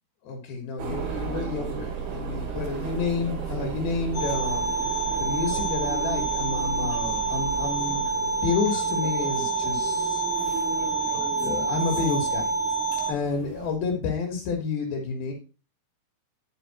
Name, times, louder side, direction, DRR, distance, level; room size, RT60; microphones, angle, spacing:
voice 1, 0.2-8.2 8.4-10.2 11.3-12.5 13.1-15.3, left 5 dB, 70° left, 2 dB, 3.2 m, -30 dB
sound 1, 0.8-13.7, right 6 dB, 65° right, 3.8 m, -35 dB
sound 2, 4.1-13.1, right 4 dB, 55° left, 1.1 m, -27 dB
10.5 x 5.4 x 4.2 m, 0.33 s
omnidirectional pair, 4.7 m